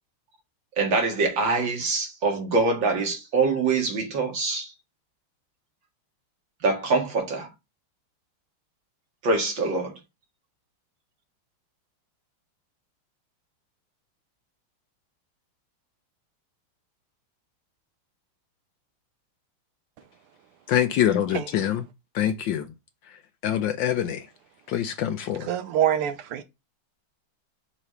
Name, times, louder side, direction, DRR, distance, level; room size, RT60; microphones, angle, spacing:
voice 1, 0.8-4.7 6.6-7.5 9.2-10.0, right 3 dB, 60° right, 2.5 m, -24 dB
voice 2, 20.7-21.8 22.1-22.7 23.1-23.2 23.4-24.3 24.7-25.5, left 10 dB, 70° left, 1.2 m, -25 dB
voice 3, 25.5-26.4, right 10 dB, 90° right, 1.7 m, -25 dB
5.7 x 3.1 x 5.4 m
omnidirectional pair, 2.4 m